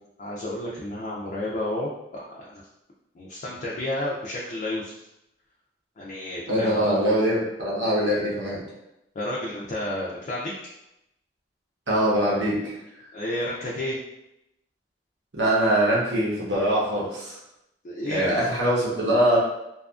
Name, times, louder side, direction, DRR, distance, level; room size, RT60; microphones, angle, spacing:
voice 1, 0.0-2.7 3.1-5.1 6.0-7.0 9.1-10.6 13.1-14.0 17.8-18.3, left 1 dB, 40° left, -4 dB, 0.3 m, -31 dB
voice 2, 6.5-8.6 11.9-12.7 15.3-17.4 18.1-19.4, right 1 dB, 70° right, -5 dB, 0.9 m, -23 dB
2.6 x 2.4 x 2.3 m, 0.88 s
head